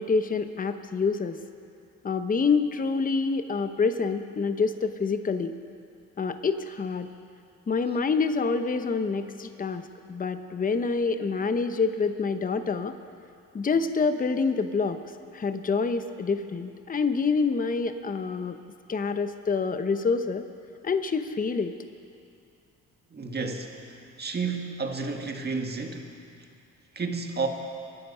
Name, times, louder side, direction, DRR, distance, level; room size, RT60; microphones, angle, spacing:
voice 1, 0.0-1.4 2.0-5.6 6.2-7.1 7.7-13.0 13.5-15.0 15.3-18.6 18.9-20.5 20.8-21.8, left 4 dB, 30° left, 9 dB, 0.9 m, -27 dB
voice 2, 23.1-26.1 26.9-27.5, right 4 dB, 35° right, 3 dB, 1.9 m, -31 dB
24.5 x 10.5 x 5.6 m, 2.5 s
cardioid pair, 90°, 30 cm